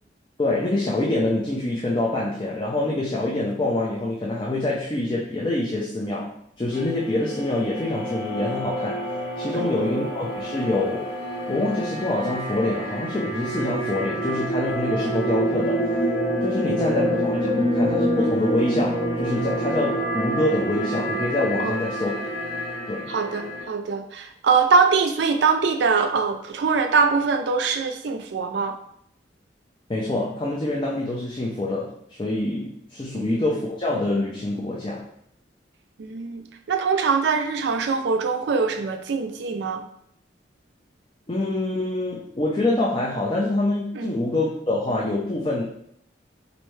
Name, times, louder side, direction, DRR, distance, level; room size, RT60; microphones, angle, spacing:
voice 1, 0.4-11.1 11.5-16.0 16.4-22.1 22.9-23.1 29.9-35.1 41.3-45.6, left 2 dB, 25° left, -4 dB, 0.5 m, -26 dB
sound 1, 6.7-23.6, right 1 dB, 45° left, 1.3 m, -27 dB
voice 2, 9.5-10.0 16.7-17.7 21.6-21.8 23.1-28.7 33.2-33.4 36.0-39.8 43.9-44.1, right 5 dB, 70° right, 6 dB, 0.4 m, -23 dB
4.4 x 2.7 x 3.1 m, 0.71 s
head